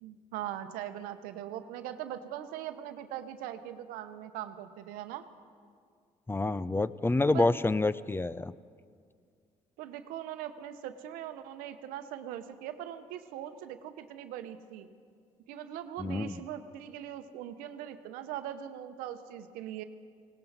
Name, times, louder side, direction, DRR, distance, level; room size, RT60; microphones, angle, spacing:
voice 1, 0.0-5.3 7.3-7.5 9.8-14.9 15.5-19.8, right 11 dB, 90° right, 9 dB, 0.8 m, -41 dB
voice 2, 6.3-8.5 16.0-16.4, left 2 dB, 15° left, 17 dB, 0.4 m, -28 dB
19.0 x 17.5 x 4.1 m, 2.1 s
supercardioid pair, 70°, 14 cm